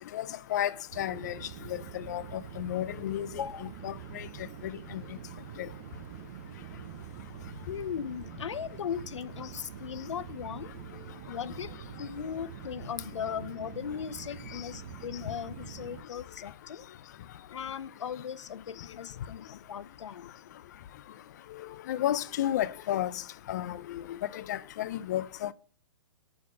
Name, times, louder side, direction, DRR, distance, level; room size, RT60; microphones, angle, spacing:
voice 1, 0.5-1.4 1.9-3.3 3.8-4.3 4.6-5.0 21.9-23.1 23.5-24.0 24.3-25.5, left 12 dB, 40° left, 0.5 m, -32 dB
sound 1, 0.9-16.0, right 9 dB, 30° right, 0.6 m, -45 dB
voice 2, 7.7-10.7 11.3-11.7 12.0-16.8 17.5-20.3, left 8 dB, 85° left, 0.7 m, -38 dB
9.4 x 4.2 x 7.1 m
hypercardioid pair, 165°, 15 cm